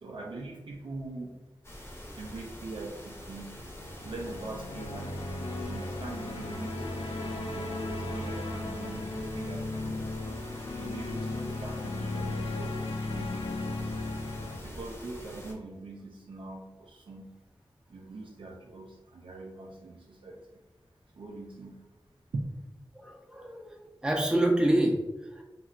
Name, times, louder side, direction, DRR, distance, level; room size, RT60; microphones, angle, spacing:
voice 1, 0.0-1.4 2.1-3.7 4.0-5.2 5.6-7.0 7.5-10.2 10.8-13.6 14.5-17.3 17.9-20.6 21.1-21.9 22.3-22.5, right 2 dB, 75° right, -1 dB, 0.4 m, -42 dB
sound 1, 1.6-15.5, equal, 30° left, 0.7 m, -45 dB
sound 2, 3.5-14.6, left 2 dB, 90° left, 0.4 m, -36 dB
voice 2, 22.9-23.7 24.0-25.0 25.4-25.5, right 1 dB, 10° right, 1 dB, 0.6 m, -27 dB
3.0 x 3.0 x 2.4 m, 1.1 s
wide cardioid pair, 55°, 9 cm